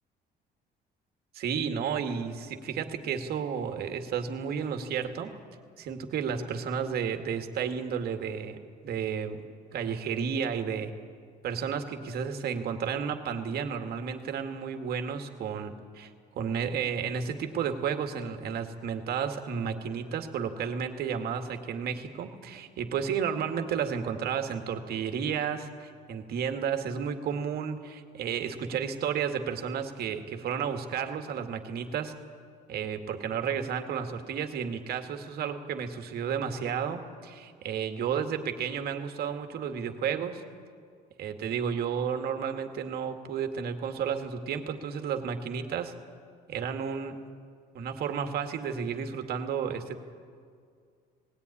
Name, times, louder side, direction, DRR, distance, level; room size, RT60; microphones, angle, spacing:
voice 1, 1.3-5.3 5.8-8.6 8.8-9.4 9.7-10.9 11.4-16.1 16.4-32.2 32.7-40.4 41.2-46.0 46.5-47.2 47.7-50.0, right 7 dB, 65° right, 6 dB, 2.0 m, -32 dB
19.5 x 17.0 x 9.9 m, 2.2 s
cardioid pair, 110°, 17 cm